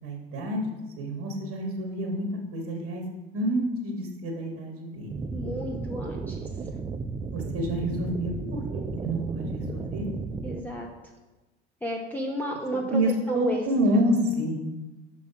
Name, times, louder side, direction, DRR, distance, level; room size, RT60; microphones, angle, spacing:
voice 1, 0.0-3.0 3.3-5.1 7.3-10.1 12.9-14.6, equal, 45° right, 1 dB, 1.4 m, -28 dB
sound 1, 5.1-10.6, right 4 dB, 15° right, 0.4 m, -34 dB
voice 2, 5.3-6.5 10.4-10.9 11.8-13.0 13.3-13.6, equal, 5° left, -1 dB, 0.8 m, -32 dB
5.8 x 5.8 x 4.7 m, 1.1 s
figure-of-eight pair, 70°, 33 cm